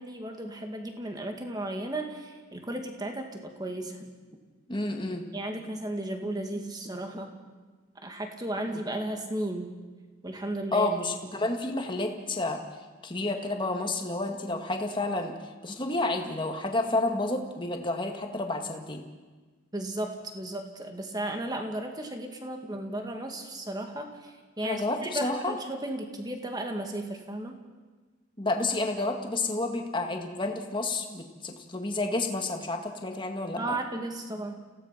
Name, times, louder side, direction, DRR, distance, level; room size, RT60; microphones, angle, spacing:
voice 1, 0.0-4.1 5.3-7.3 8.0-9.7 10.2-10.9 11.4-11.5 19.7-27.6 33.6-34.6, right 1 dB, 20° right, 3 dB, 2.3 m, -34 dB
voice 2, 4.7-5.3 8.7-8.8 10.7-12.6 13.0-15.3 15.6-19.0 24.6-25.5 28.4-33.8, left 2 dB, 25° left, 4 dB, 2.0 m, -30 dB
29.0 x 17.0 x 5.9 m, 1.3 s
head